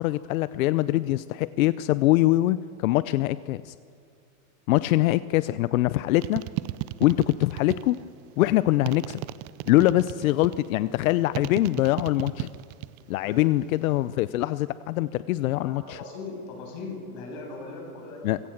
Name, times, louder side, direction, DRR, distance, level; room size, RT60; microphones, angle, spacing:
voice 1, 0.0-3.7 4.7-6.4 7.0-8.0 8.4-9.2 9.7-12.5 13.1-16.0 18.2-18.4, left 16 dB, 70° left, 16 dB, 0.7 m, -23 dB
sound 1, 6.2-8.1 8.9-10.7 11.3-13.0 13.3-13.9, right 18 dB, 35° right, 0.6 m, -34 dB
voice 2, 15.6-18.3, left 3 dB, 45° left, 1 dB, 7.4 m, -39 dB
26.5 x 17.0 x 7.3 m, 2.2 s
supercardioid pair, 145°, 43 cm